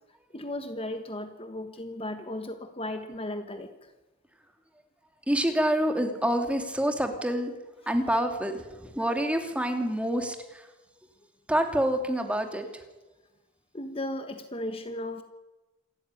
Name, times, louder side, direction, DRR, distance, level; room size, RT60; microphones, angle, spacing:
voice 1, 0.3-3.9 13.7-15.2, left 1 dB, 30° left, 7 dB, 1.4 m, -36 dB
voice 2, 5.3-7.5 7.9-10.7 11.5-12.8, right 1 dB, 5° right, 5 dB, 2.6 m, -27 dB
27.0 x 13.5 x 9.8 m, 1.1 s
head